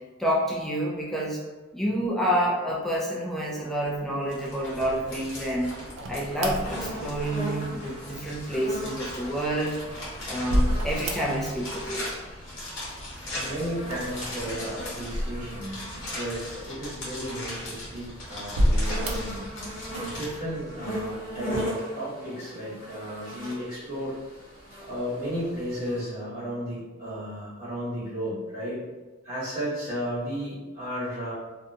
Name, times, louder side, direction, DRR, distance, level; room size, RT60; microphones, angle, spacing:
voice 1, 0.2-1.4 1.7-5.7 6.1-9.8 10.3-12.0, equal, ahead, -4 dB, 0.3 m, -28 dB
sound 1, 3.8-20.3, left 1 dB, 75° left, 0.9 m, -39 dB
sound 2, 6.0-7.6 9.5-11.7 11.9-12.7 13.8-15.9 16.5-16.6 17.4-18.0 18.4-19.4, equal, 70° right, 0.4 m, -29 dB
sound 3, 6.6-26.0, equal, 45° left, 0.8 m, -39 dB
voice 2, 13.4-15.8 16.1-19.4 20.0-24.1 24.8-28.8 29.2-31.3, equal, 40° right, -13 dB, 1.2 m, -34 dB
2.5 x 2.2 x 2.6 m, 1.2 s
head